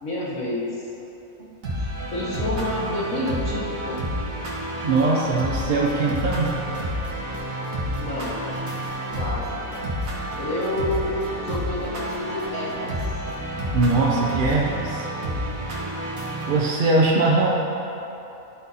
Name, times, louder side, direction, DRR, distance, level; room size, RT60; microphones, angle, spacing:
voice 1, 0.0-0.7 1.8-4.0 8.0-8.3 9.2-9.4 10.4-11.1 11.4-12.9, left 1 dB, 70° left, -8 dB, 1.9 m, -29 dB
sound 1, 1.6-16.6, equal, 70° right, 1.8 m, -30 dB
voice 2, 4.8-6.6 13.7-15.0 16.5-17.5, right 3 dB, 50° right, -3 dB, 0.7 m, -21 dB
sound 2, 4.9-14.7, right 1 dB, 15° right, 0.8 m, -45 dB
12.0 x 4.1 x 4.0 m, 3.0 s
omnidirectional pair, 1.5 m